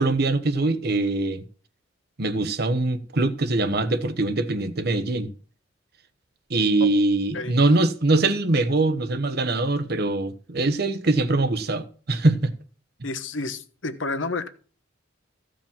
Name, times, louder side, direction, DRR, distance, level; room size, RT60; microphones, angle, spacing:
voice 1, 0.0-1.4 2.2-5.3 6.5-12.5, right 2 dB, 55° right, 1.0 m, -23 dB
voice 2, 7.3-7.7 13.0-14.5, left 3 dB, 75° left, 1.2 m, -30 dB
15.0 x 5.0 x 7.3 m
head